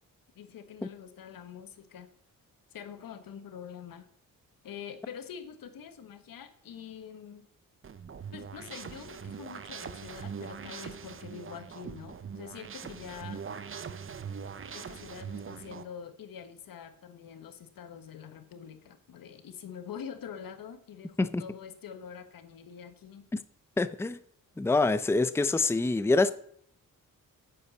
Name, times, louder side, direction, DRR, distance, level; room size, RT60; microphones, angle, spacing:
voice 1, 0.4-2.1 2.7-4.1 4.6-7.4 8.3-13.4 14.7-23.3, left 8 dB, 85° left, 1.3 m, -45 dB
sound 1, 7.8-15.8, right 6 dB, 40° right, 0.8 m, -42 dB
voice 2, 23.8-24.2 24.6-26.3, left 3 dB, 10° left, 0.5 m, -25 dB
9.4 x 8.2 x 7.0 m
cardioid pair, 110°, 33 cm